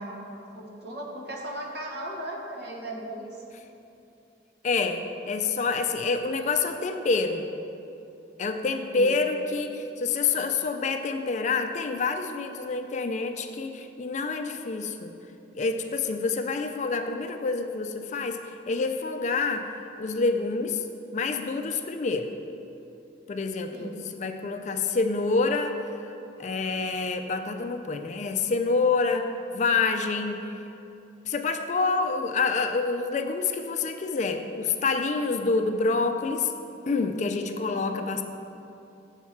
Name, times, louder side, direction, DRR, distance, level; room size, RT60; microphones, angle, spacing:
voice 1, 0.0-3.4 8.7-9.2 23.7-24.0 37.7-37.9, right 1 dB, 60° right, 0 dB, 1.1 m, -37 dB
voice 2, 4.6-7.5 8.4-15.1 15.5-18.4 18.7-20.8 21.1-22.3 23.3-26.0 26.4-30.5 31.3-36.5 36.9-38.2, left 4 dB, 40° left, 6 dB, 0.4 m, -27 dB
7.2 x 4.6 x 5.7 m, 2.8 s
head